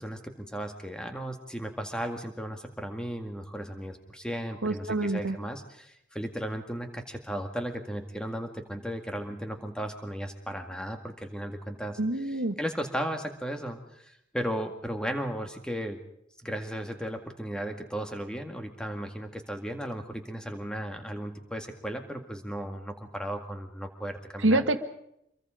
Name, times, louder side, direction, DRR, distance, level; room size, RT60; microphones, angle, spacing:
voice 1, 0.0-12.0 12.6-16.0 16.4-24.6, equal, 5° left, 5 dB, 2.0 m, -35 dB
voice 2, 4.6-5.4 12.0-12.6 24.4-24.8, right 2 dB, 85° right, 8 dB, 1.7 m, -26 dB
26.5 x 23.0 x 5.1 m, 0.77 s
head